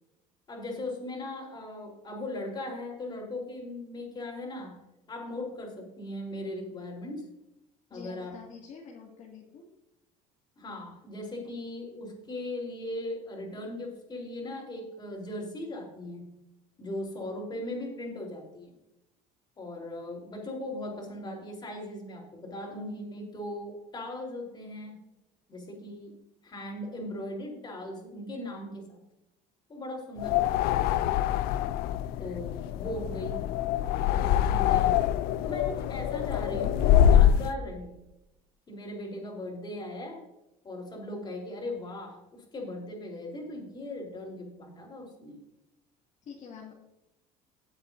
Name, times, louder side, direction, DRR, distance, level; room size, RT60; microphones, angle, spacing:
voice 1, 0.5-4.8 5.1-7.3 7.9-8.4 10.6-16.3 16.8-18.7 19.6-25.0 25.5-26.1 26.4-29.0 29.7-31.1 32.2-33.5 34.1-35.0 35.4-37.9 38.7-40.2 40.6-45.4, left 1 dB, 25° left, -1 dB, 4.1 m, -38 dB
voice 2, 7.9-9.6 46.3-46.7, left 6 dB, 50° left, -3 dB, 2.3 m, -46 dB
sound 1, 30.2-37.5, left 10 dB, 75° left, 0.5 m, -25 dB
17.5 x 8.0 x 2.8 m, 0.92 s
cardioid pair, 120°, 16 cm